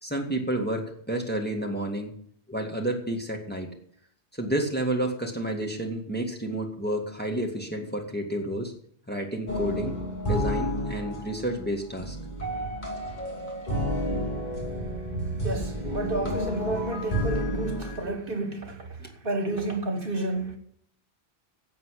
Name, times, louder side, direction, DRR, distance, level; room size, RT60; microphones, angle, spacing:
voice 1, 0.0-2.1 2.5-3.7 4.3-8.7 9.1-10.0 10.3-12.2 18.0-18.2 19.0-19.1, right 1 dB, 10° left, 1.9 m, -30 dB
sound 1, 9.5-18.0, equal, 45° left, 2.9 m, -31 dB
voice 2, 15.4-18.9 19.2-20.6, right 2 dB, 55° right, 1.6 m, -30 dB
11.0 x 7.8 x 8.3 m
omnidirectional pair, 1.1 m